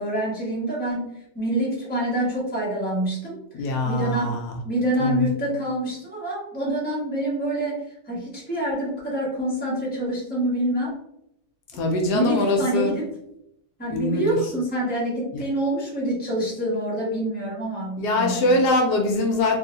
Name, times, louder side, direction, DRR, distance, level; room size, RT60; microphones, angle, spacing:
voice 1, 0.0-4.4 4.6-10.9 12.1-13.0 13.8-18.6, right 1 dB, 5° left, -6 dB, 1.1 m, -26 dB
voice 2, 3.5-4.5 5.0-5.3 11.7-12.9 13.9-14.4 15.3-15.4 18.0-19.6, left 2 dB, 80° left, 2 dB, 1.2 m, -23 dB
3.1 x 2.6 x 2.6 m, 0.77 s
omnidirectional pair, 1.8 m